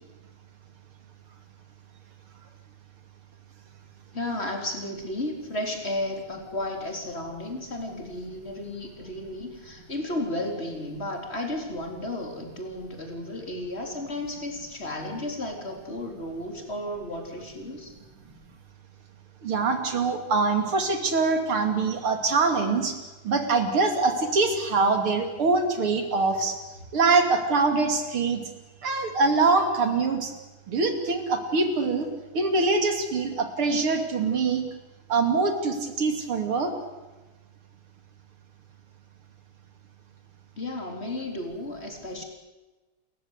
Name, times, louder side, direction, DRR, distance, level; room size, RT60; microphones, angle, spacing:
voice 1, 4.1-17.9 40.6-42.2, left 1 dB, 30° left, 2 dB, 4.1 m, -33 dB
voice 2, 19.4-23.0 23.2-26.6 26.9-28.4 28.8-30.3 30.7-32.1 32.3-34.6 35.1-36.7, right 3 dB, 75° right, 6 dB, 3.6 m, -24 dB
30.0 x 15.0 x 8.3 m, 1.2 s
omnidirectional pair, 2.4 m